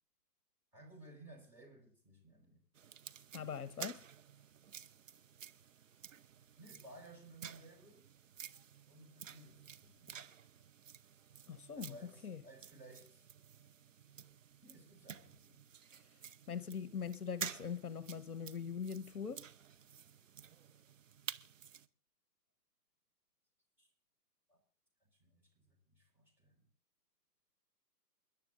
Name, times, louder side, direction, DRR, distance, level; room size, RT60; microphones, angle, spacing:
voice 1, 0.7-2.6 6.6-8.1 8.9-10.2 11.7-13.3 14.6-16.0 23.8-23.9 24.5-24.6 25.0-26.7, right 1 dB, 5° right, 4.7 m, -58 dB
sound 1, 2.7-21.9, right 8 dB, 50° right, 0.9 m, -52 dB
voice 2, 3.3-4.0 11.5-12.0 12.2-12.4 16.5-19.5, left 7 dB, 60° left, 1.2 m, -42 dB
29.0 x 11.0 x 2.6 m
figure-of-eight pair, 140°, 50 cm